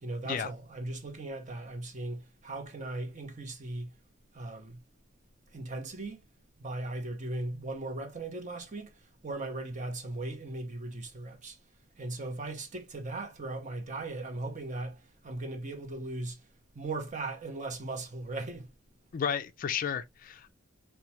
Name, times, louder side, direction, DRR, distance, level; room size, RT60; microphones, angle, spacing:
voice 1, 0.0-3.9 4.3-4.8 5.5-6.2 6.6-8.9 9.2-11.6 12.0-16.4 16.7-18.7, right 2 dB, 35° right, 0.7 m, -38 dB
voice 2, 19.1-20.5, left 7 dB, 45° left, 0.3 m, -32 dB
4.4 x 2.2 x 2.8 m
head